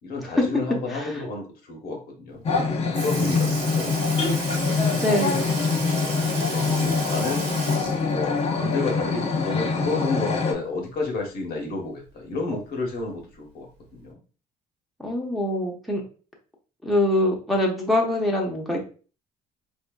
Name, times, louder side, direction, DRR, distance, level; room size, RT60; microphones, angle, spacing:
voice 1, 0.0-3.9 6.3-7.5 8.0-14.2, left 3 dB, 65° left, 2 dB, 1.1 m, -31 dB
voice 2, 0.9-1.2 5.0-5.4 15.0-16.0 16.8-18.8, left 1 dB, ahead, -2 dB, 0.8 m, -24 dB
sound 1, 2.4-10.5, left 4 dB, 40° left, 0.6 m, -24 dB
Sink (filling or washing) / Liquid, 2.5-2.6 2.9-9.0 9.4-9.5 11.0-11.1 12.1-12.2 13.0-13.2 14.0-14.1, right 4 dB, 80° right, 1.1 m, -35 dB
4.1 x 2.6 x 2.2 m, 0.37 s
cardioid pair, 110°, 17 cm